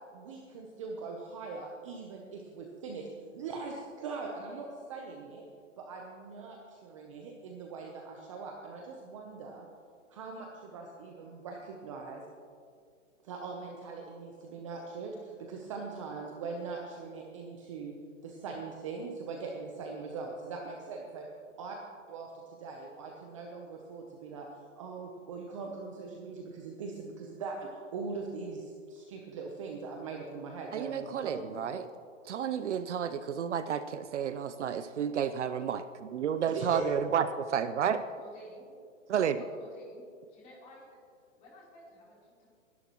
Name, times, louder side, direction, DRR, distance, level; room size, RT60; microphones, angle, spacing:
voice 1, 0.1-5.5 5.8-9.7 10.1-12.2 13.2-17.9 18.2-21.3 21.6-21.8 22.1-24.5 24.8-31.9 36.5-36.9, right 4 dB, 25° right, 1 dB, 0.8 m, -41 dB
voice 2, 30.7-31.8 32.3-38.0 39.1-39.4, right 8 dB, 60° right, 12 dB, 0.6 m, -31 dB
voice 3, 38.2-38.7 39.4-40.0 40.3-40.8 41.4-42.5, equal, 20° left, -5 dB, 3.7 m, -52 dB
20.5 x 11.0 x 3.1 m, 2.2 s
hypercardioid pair, 165°, 39 cm